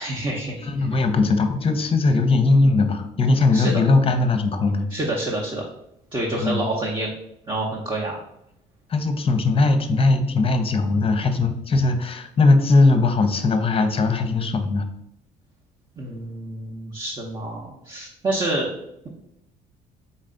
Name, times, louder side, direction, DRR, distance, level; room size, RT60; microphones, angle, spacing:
voice 1, 0.0-1.0 3.5-3.8 4.9-5.6 6.1-7.1 7.5-8.2 16.0-18.7, right 1 dB, 25° right, -2 dB, 0.8 m, -28 dB
voice 2, 0.6-4.9 6.4-6.6 8.9-14.8, left 3 dB, 30° left, 7 dB, 0.7 m, -19 dB
4.1 x 3.2 x 3.8 m, 0.82 s
supercardioid pair, 85°, 18 cm